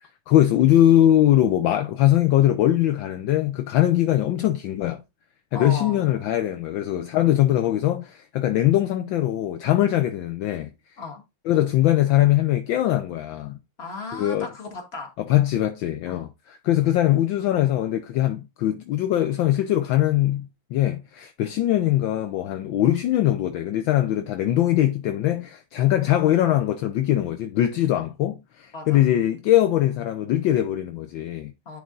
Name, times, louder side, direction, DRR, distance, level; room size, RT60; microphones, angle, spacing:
voice 1, 0.0-5.0 5.5-10.7 11.5-13.6 14.1-14.5 15.2-31.5, left 13 dB, 70° left, 1.3 m, -21 dB
voice 2, 5.5-6.0 11.0-11.2 13.8-15.1 16.1-16.3 28.7-29.0 31.7-31.8, left 3 dB, 30° left, 2.0 m, -35 dB
10.5 x 3.7 x 3.8 m
omnidirectional pair, 2.3 m